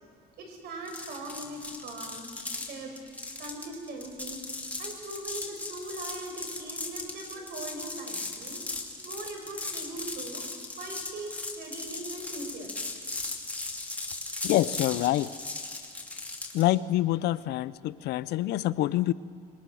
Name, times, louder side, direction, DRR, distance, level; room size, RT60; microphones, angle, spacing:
voice 1, 0.4-2.3 2.6-2.9 3.4-4.4 4.8-8.7 9.0-10.4 10.8-12.8, right 2 dB, 75° right, 3 dB, 5.8 m, -40 dB
sound 1, 0.9-16.7, left 2 dB, 10° left, 3.0 m, -37 dB
voice 2, 14.4-15.3 16.5-19.1, left 15 dB, 80° left, 17 dB, 0.6 m, -26 dB
26.5 x 22.0 x 6.3 m, 2.2 s
cardioid pair, 110°, 17 cm